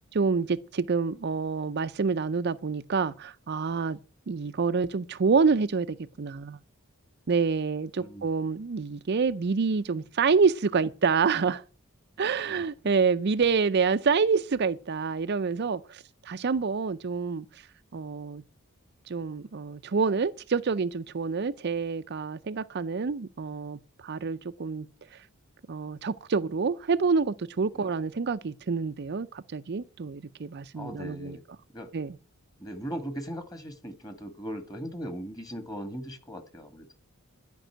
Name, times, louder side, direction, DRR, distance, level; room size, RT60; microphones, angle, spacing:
voice 1, 0.1-4.0 4.3-6.6 7.3-11.6 12.2-17.6 17.9-18.4 19.1-24.9 25.1-25.2 25.7-31.4 31.9-32.2, right 5 dB, 50° right, 0.5 m, -27 dB
voice 2, 8.0-8.3 12.5-12.6 27.8-27.9 30.7-31.4 31.7-31.9 32.6-37.0, equal, 15° left, 1.9 m, -38 dB
12.0 x 5.4 x 8.9 m
head